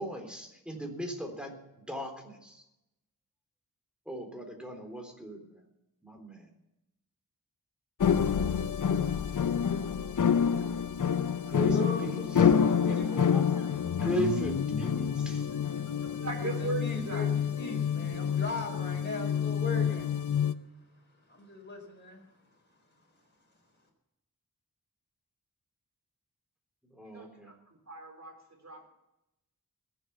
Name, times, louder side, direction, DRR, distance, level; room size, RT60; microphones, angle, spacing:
voice 1, 0.0-1.6 1.9-2.6 4.1-5.6 6.0-6.5 11.5-12.4 13.0-13.7 13.9-15.5 26.9-27.5, right 1 dB, 5° right, 3 dB, 3.7 m, -38 dB
sound 1, 8.0-20.5, left 7 dB, 55° left, 0.7 m, -28 dB
voice 2, 11.6-13.3 16.3-20.1 21.3-22.2, left 3 dB, 30° left, -1 dB, 4.3 m, -38 dB
voice 3, 15.7-17.3 27.0-27.6 27.9-28.9, right 3 dB, 45° right, 1 dB, 4.1 m, -39 dB
21.0 x 8.1 x 6.9 m, 0.89 s
wide cardioid pair, 80°, 36 cm